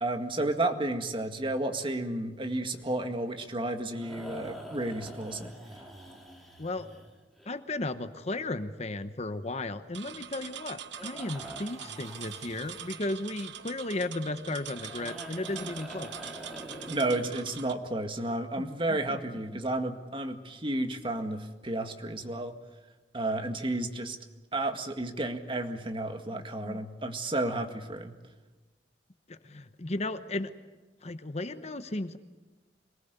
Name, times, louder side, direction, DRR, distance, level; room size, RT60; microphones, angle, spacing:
voice 1, 0.0-5.5 16.9-22.5 23.1-24.2 24.5-28.1, right 2 dB, 30° right, 5 dB, 1.9 m, -32 dB
sound 1, 2.7-7.5 11.0-13.2 14.7-17.8, right 1 dB, ahead, 3.6 m, -46 dB
voice 2, 6.6-6.9 7.5-16.1 18.6-19.4 26.3-26.8 29.3-30.5 31.0-32.2, left 2 dB, 40° left, 10 dB, 1.0 m, -35 dB
sound 2, 9.9-17.7, right 9 dB, 90° right, 1.0 m, -43 dB
25.5 x 19.5 x 8.2 m, 1.2 s
head